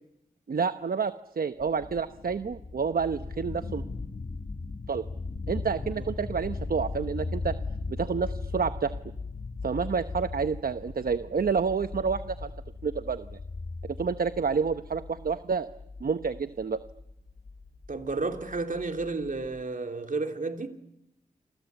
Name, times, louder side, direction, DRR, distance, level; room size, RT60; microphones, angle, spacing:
voice 1, 0.5-3.8 4.9-5.1 5.5-7.5 7.9-8.9 9.6-12.5 12.8-13.4 14.0-15.7 16.0-16.8, right 5 dB, 80° right, 0.9 m, -29 dB
sound 1, 1.6-19.4, left 3 dB, 70° left, 2.2 m, -38 dB
voice 2, 17.9-20.7, right 3 dB, 65° right, 3.2 m, -31 dB
28.5 x 23.0 x 8.2 m
wide cardioid pair, 80°, 15 cm